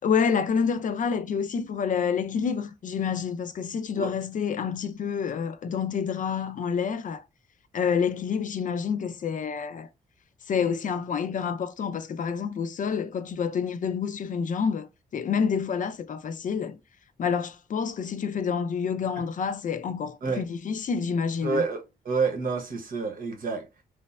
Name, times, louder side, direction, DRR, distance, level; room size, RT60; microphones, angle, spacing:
voice 1, 0.0-7.2 7.7-9.9 10.5-16.8 17.2-21.6, left 6 dB, 50° left, 0.4 m, -28 dB
voice 2, 21.4-23.7, right 4 dB, 55° right, 0.8 m, -28 dB
3.1 x 2.1 x 2.3 m
cardioid pair, 75°, 17 cm